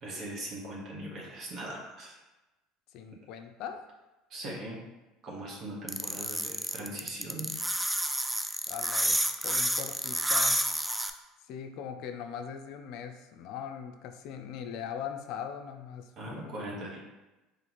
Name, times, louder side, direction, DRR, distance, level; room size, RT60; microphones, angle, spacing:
voice 1, 0.0-2.2 4.3-4.8 5.2-7.5 16.2-17.0, right 1 dB, 50° right, -3 dB, 1.2 m, -40 dB
voice 2, 2.9-3.8 8.7-10.6 11.4-16.5, left 8 dB, 65° left, 6 dB, 0.4 m, -40 dB
sound 1, 5.9-11.1, right 1 dB, 5° right, 0.3 m, -29 dB
4.0 x 3.1 x 3.0 m, 1.0 s
supercardioid pair, 95°, 0 cm